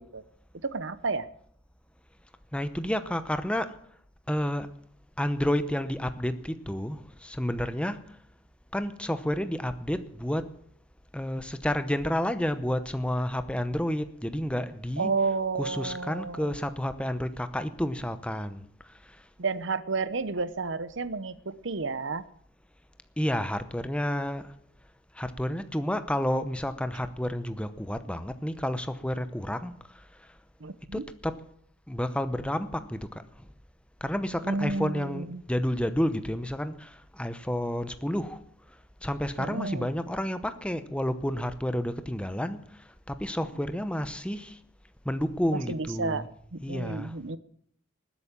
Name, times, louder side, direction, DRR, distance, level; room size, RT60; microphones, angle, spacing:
voice 1, 0.6-1.3 15.0-16.5 19.4-22.2 30.6-31.1 34.4-35.4 39.4-39.9 45.5-46.2 46.5-47.4, right 4 dB, 60° right, 15 dB, 0.9 m, -31 dB
voice 2, 2.5-3.7 4.3-4.7 5.2-8.0 8.7-10.5 11.1-15.1 15.5-18.6 23.2-24.4 25.2-29.7 30.9-31.3 31.9-33.2 34.0-38.4 39.0-42.6 43.1-44.6 45.1-46.3 46.6-47.1, equal, 5° left, 11 dB, 0.8 m, -30 dB
20.0 x 8.3 x 7.4 m, 0.66 s
head